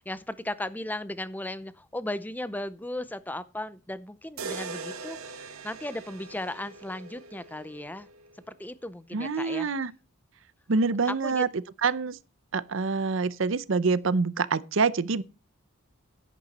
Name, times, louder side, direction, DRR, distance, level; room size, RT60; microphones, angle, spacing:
voice 1, 0.0-8.1 8.5-9.7 11.1-11.4, left 1 dB, 10° left, 0.5 m, -36 dB
sound 1, 4.4-8.4, right 4 dB, 90° right, 1.7 m, -41 dB
voice 2, 9.1-9.9 10.7-11.5 11.8-12.2 12.5-15.2, right 4 dB, 65° right, 0.6 m, -26 dB
11.0 x 9.4 x 4.1 m
head